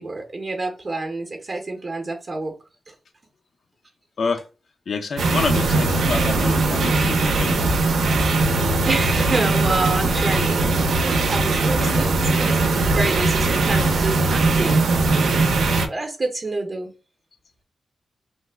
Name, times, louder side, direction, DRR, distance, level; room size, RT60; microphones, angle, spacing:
voice 1, 0.0-2.5 2.9-3.0 8.6-10.6 11.0-12.6 12.9-14.8 15.9-16.9, right 3 dB, 35° right, 0.6 m, -28 dB
voice 2, 4.9-7.6 11.8-12.1, left 4 dB, 60° left, 0.4 m, -27 dB
sound 1, 5.2-15.9, right 3 dB, 90° right, 0.5 m, -20 dB
Bass guitar, 8.4-14.7, left 10 dB, 85° left, 0.7 m, -37 dB
3.1 x 2.1 x 3.2 m
wide cardioid pair, 130°, 0 cm